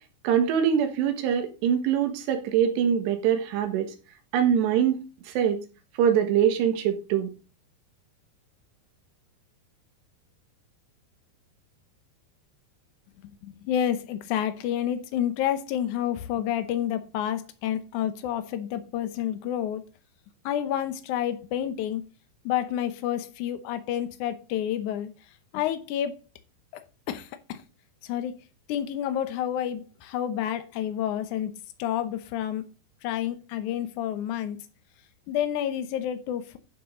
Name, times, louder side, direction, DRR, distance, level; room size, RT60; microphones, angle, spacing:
voice 1, 0.2-3.9 4.3-5.6 6.0-7.3, right 8 dB, 90° right, 3.6 m, -23 dB
voice 2, 13.2-19.8 20.4-22.0 22.5-25.1 25.5-26.2 27.1-27.6 28.0-28.4 28.7-31.5 31.8-32.6 33.0-34.6 35.3-36.6, left 10 dB, 85° left, 1.7 m, -29 dB
11.5 x 7.1 x 3.8 m
omnidirectional pair, 4.8 m